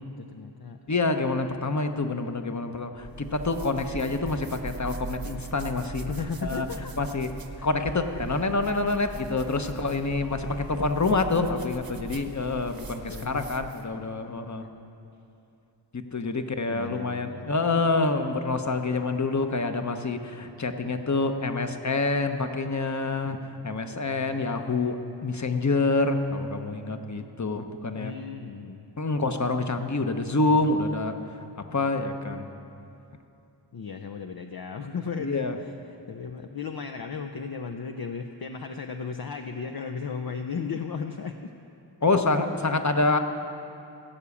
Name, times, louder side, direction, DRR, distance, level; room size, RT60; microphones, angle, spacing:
voice 1, 0.0-0.8 6.1-6.9 7.6-7.7 13.1-13.4 16.7-17.5 27.9-28.9 33.7-41.5, left 5 dB, 55° left, 6 dB, 0.6 m, -35 dB
voice 2, 0.9-6.1 6.4-6.7 7.0-7.3 7.6-14.7 15.9-23.4 23.6-25.0 25.2-28.1 29.0-31.1 31.6-32.5 35.2-35.6 42.0-43.2, left 3 dB, 40° left, 7 dB, 1.0 m, -27 dB
sound 1, 3.0-13.9, right 4 dB, 50° right, 1.0 m, -40 dB
17.5 x 7.0 x 8.5 m, 2.7 s
wide cardioid pair, 55°, 44 cm